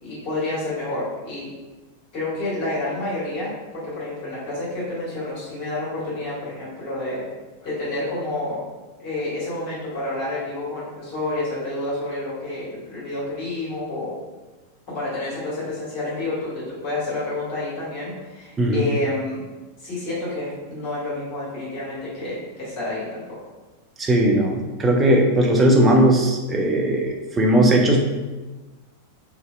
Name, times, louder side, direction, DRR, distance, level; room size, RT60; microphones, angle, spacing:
voice 1, 0.0-1.5 2.1-7.2 7.6-8.6 9.0-14.1 14.9-19.4 19.8-23.2, left 2 dB, 40° left, -8 dB, 1.4 m, -29 dB
voice 2, 24.0-28.0, right 1 dB, 20° right, 1 dB, 0.4 m, -18 dB
2.6 x 2.2 x 2.2 m, 1.2 s
figure-of-eight pair, 90°, 0 cm